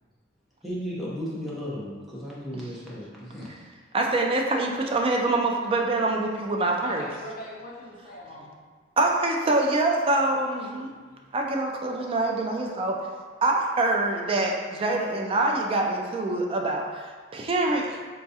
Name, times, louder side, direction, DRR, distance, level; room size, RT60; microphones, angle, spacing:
voice 1, 0.6-3.6, equal, ahead, -8 dB, 0.7 m, -35 dB
voice 2, 3.9-7.0 9.0-10.9 11.3-13.0 13.4-18.1, right 2 dB, 30° right, 1 dB, 0.3 m, -25 dB
voice 3, 6.8-8.5 11.1-11.3, left 1 dB, 45° left, -6 dB, 0.8 m, -41 dB
3.8 x 2.3 x 2.7 m, 1.5 s
head